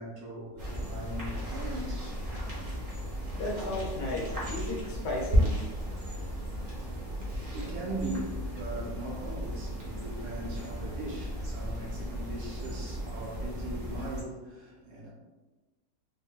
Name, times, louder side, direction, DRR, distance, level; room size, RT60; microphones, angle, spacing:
voice 1, 0.0-2.1 6.8-15.1, right 1 dB, 65° right, 1.2 m, -40 dB
sound 1, 0.6-14.2, equal, 45° right, 0.7 m, -34 dB
voice 2, 3.4-5.6, left 1 dB, 70° left, 1.1 m, -34 dB
3.6 x 2.5 x 2.3 m
omnidirectional pair, 1.9 m